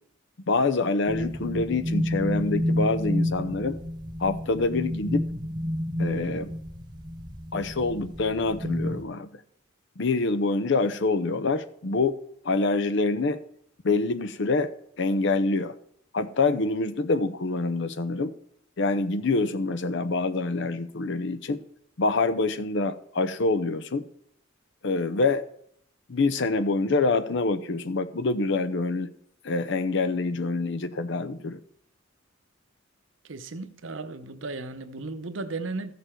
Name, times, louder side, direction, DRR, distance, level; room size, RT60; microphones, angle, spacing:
voice 1, 0.5-3.8 4.2-5.2 6.0-6.5 7.5-9.4 10.0-12.2 12.4-13.4 13.8-14.7 15.0-15.7 16.1-18.3 18.8-21.6 22.0-24.1 24.8-25.4 26.1-29.1 29.4-31.6, left 3 dB, 65° left, 0.7 m, -26 dB
sound 1, 1.1-9.0, left 1 dB, 20° right, 0.9 m, -30 dB
voice 2, 33.2-35.9, right 3 dB, 70° right, 0.8 m, -35 dB
14.0 x 6.8 x 4.5 m
head